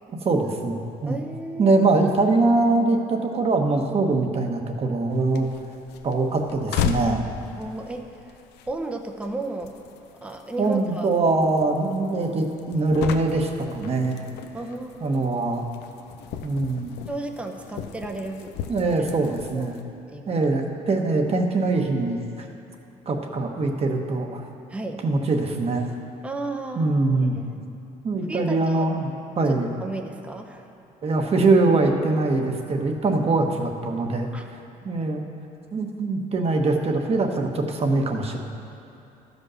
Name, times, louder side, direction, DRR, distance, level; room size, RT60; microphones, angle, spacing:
voice 1, 0.2-1.2 1.6-5.5 6.0-7.3 10.6-14.2 15.0-15.6 16.4-16.9 18.7-19.8 20.3-22.5 23.1-24.4 25.0-25.9 26.8-27.4 28.0-29.1 29.4-29.7 31.0-34.3 34.8-35.2 35.7-38.4, right 3 dB, 35° right, 3 dB, 1.1 m, -23 dB
voice 2, 1.1-1.8 7.6-8.4 8.7-9.7 10.2-11.1 14.5-15.3 17.1-18.5 18.9-19.0 19.3-19.8 20.1-20.5 24.7-25.0 26.2-27.6 28.3-28.9 29.5-30.7 34.3-34.5, right 2 dB, 5° right, 3 dB, 0.7 m, -34 dB
sound 1, 5.1-19.8, left 8 dB, 80° left, 0.6 m, -36 dB
13.5 x 5.3 x 6.3 m, 2.8 s
cardioid pair, 110°, 17 cm